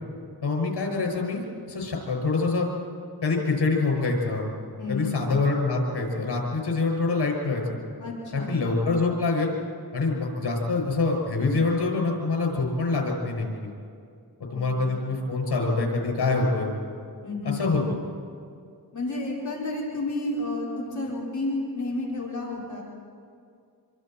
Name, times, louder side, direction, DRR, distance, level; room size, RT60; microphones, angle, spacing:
voice 1, 0.4-2.7 3.2-4.5 4.9-7.8 8.3-9.5 9.9-13.7 14.4-16.7 17.4-17.8, left 3 dB, 75° left, 1 dB, 6.4 m, -25 dB
voice 2, 4.8-5.3 8.0-8.6 14.5-15.0 17.2-17.9 18.9-22.8, left 2 dB, 45° left, -5 dB, 5.2 m, -31 dB
26.5 x 25.5 x 4.5 m, 2.4 s
wide cardioid pair, 80°, 40 cm